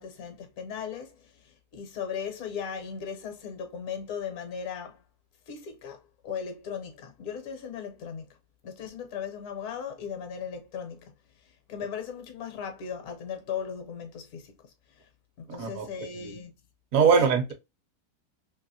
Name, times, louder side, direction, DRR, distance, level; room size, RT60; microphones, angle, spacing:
voice 1, 0.0-5.0 5.5-8.3 8.6-11.1 11.4-15.1 15.4-16.5 17.1-17.3, left 7 dB, 65° left, 1.1 m, -37 dB
voice 2, 16.9-17.5, right 6 dB, 70° right, 1.0 m, -22 dB
2.8 x 2.8 x 2.6 m
omnidirectional pair, 1.6 m